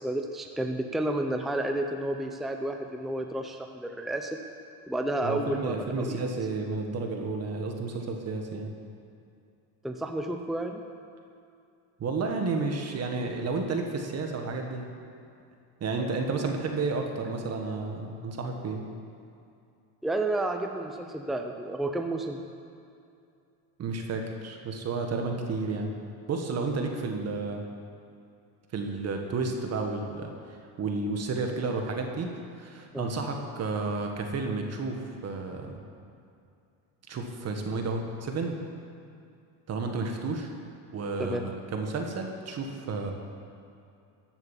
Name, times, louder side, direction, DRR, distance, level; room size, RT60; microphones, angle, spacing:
voice 1, 0.0-4.4 4.9-6.2 9.8-10.8 20.0-22.4 32.9-33.1 41.2-41.5, right 1 dB, ahead, 4 dB, 0.7 m, -31 dB
voice 2, 5.2-8.7 12.0-14.9 15.8-18.8 23.8-25.9 26.3-27.6 28.7-30.3 30.8-35.8 37.1-38.6 39.7-40.5 40.9-43.1, right 3 dB, 35° right, 3 dB, 1.7 m, -31 dB
14.5 x 8.0 x 7.4 m, 2.5 s
supercardioid pair, 115°, 43 cm